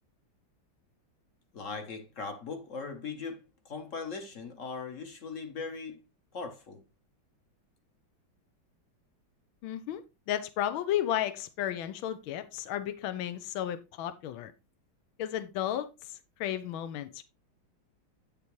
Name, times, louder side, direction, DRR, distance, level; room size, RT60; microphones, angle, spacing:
voice 1, 1.5-6.0 6.3-6.8, left 4 dB, 45° left, 1.2 m, -39 dB
voice 2, 9.6-10.0 10.3-14.5 15.2-15.9 16.4-17.2, left 11 dB, 80° left, 1.5 m, -33 dB
8.6 x 7.0 x 3.1 m
omnidirectional pair, 2.2 m